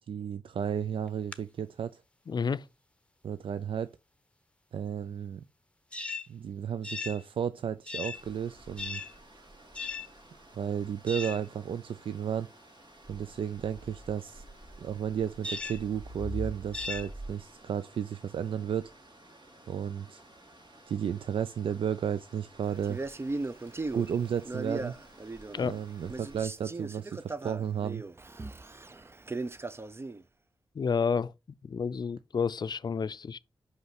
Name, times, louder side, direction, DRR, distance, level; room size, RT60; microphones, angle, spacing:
voice 1, 0.0-2.0 3.2-3.9 4.7-5.4 6.3-9.0 10.6-12.5 13.1-14.4 14.8-18.9 19.7-20.2 20.9-23.0 23.9-25.0 25.6-28.0, right 8 dB, 80° right, 0.4 m, -33 dB
sound 1, 1.1-1.3 5.9-6.3 6.8-7.2 7.9-8.2 8.8-9.2 9.7-10.1 11.1-11.5 15.4-15.8 16.7-17.1, left 4 dB, 15° left, 0.9 m, -37 dB
voice 2, 2.3-2.6 25.5-25.8 30.8-31.3 31.6-33.4, left 5 dB, 55° left, 0.5 m, -30 dB
sound 2, 8.1-26.4, right 1 dB, 60° right, 3.5 m, -48 dB
Male speech man speaking, 22.8-25.8 26.1-30.2, right 3 dB, 30° right, 0.6 m, -38 dB
5.6 x 5.5 x 5.9 m
cardioid pair, 70°, 9 cm